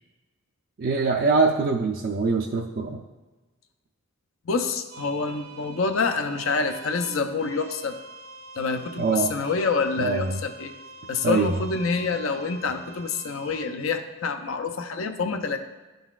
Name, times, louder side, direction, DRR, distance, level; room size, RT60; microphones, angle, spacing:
voice 1, 0.8-3.0 9.0-9.3 10.0-10.4 11.2-11.6, right 4 dB, 45° right, -1 dB, 0.4 m, -23 dB
voice 2, 4.5-8.0 8.6-10.7 11.1-15.6, left 4 dB, 70° left, 6 dB, 0.5 m, -27 dB
sound 1, 4.9-13.7, right 3 dB, 80° right, 1.1 m, -45 dB
11.5 x 3.9 x 2.4 m, 1.2 s
head